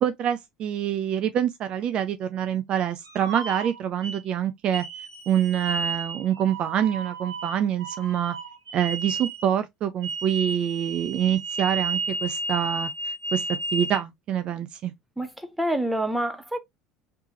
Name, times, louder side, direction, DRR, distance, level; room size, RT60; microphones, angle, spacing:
voice 1, 0.0-4.8 5.3-8.4 8.7-13.4 13.7-14.9, right 9 dB, 45° right, 0.4 m, -26 dB
sound 1, 3.0-4.2 4.7-9.5 10.0-14.0, right 3 dB, 85° right, 0.9 m, -32 dB
voice 2, 15.2-16.6, right 1 dB, ahead, 0.9 m, -27 dB
3.3 x 3.1 x 2.8 m
figure-of-eight pair, 65°, 2 cm